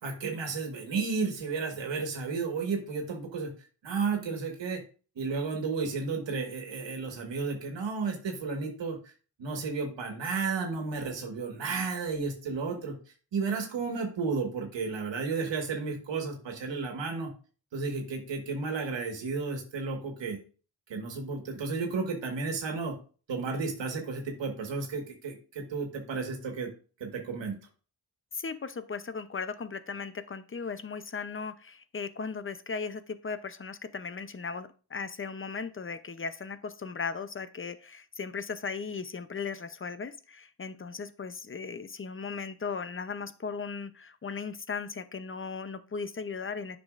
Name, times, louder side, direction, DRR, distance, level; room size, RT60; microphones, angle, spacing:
voice 1, 0.0-3.5 3.8-4.8 5.1-9.1 9.4-12.9 13.3-17.3 17.7-20.4 20.9-22.9 23.3-26.7 27.0-27.6, right 4 dB, 85° right, 3 dB, 1.6 m, -33 dB
voice 2, 28.3-46.8, left 5 dB, 30° left, 13 dB, 0.6 m, -37 dB
9.6 x 6.1 x 2.5 m, 0.38 s
cardioid pair, 80°, 43 cm